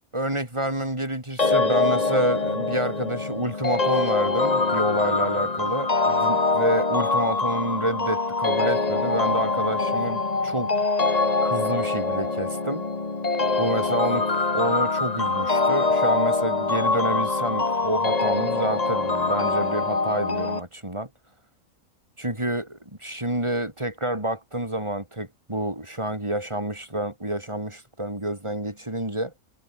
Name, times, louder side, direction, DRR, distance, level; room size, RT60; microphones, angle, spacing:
voice 1, 0.1-10.7 11.4-12.8 13.6-14.2 14.5-21.1 22.2-29.3, right 1 dB, 20° right, 4.7 m, -28 dB
sound 1, 1.4-20.6, left 3 dB, 25° left, 1.7 m, -24 dB
omnidirectional pair, 1.6 m